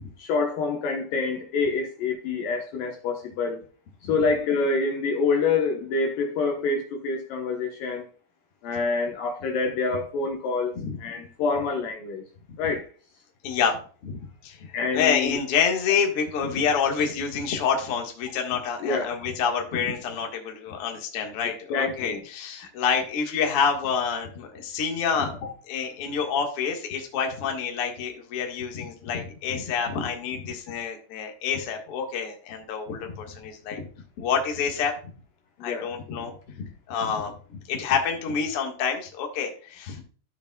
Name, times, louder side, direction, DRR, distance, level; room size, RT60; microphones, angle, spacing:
voice 1, 0.2-3.6 4.1-8.1 8.6-10.7 11.0-12.2 12.6-12.9 14.7-15.4 18.8-19.1 21.7-22.2 35.6-35.9, left 4 dB, 65° left, 2.5 m, -26 dB
voice 2, 13.4-14.6 14.9-25.4 25.7-33.9 34.2-34.9 35.6-40.0, left 6 dB, 50° left, 2.0 m, -27 dB
13.5 x 6.8 x 2.3 m
omnidirectional pair, 4.8 m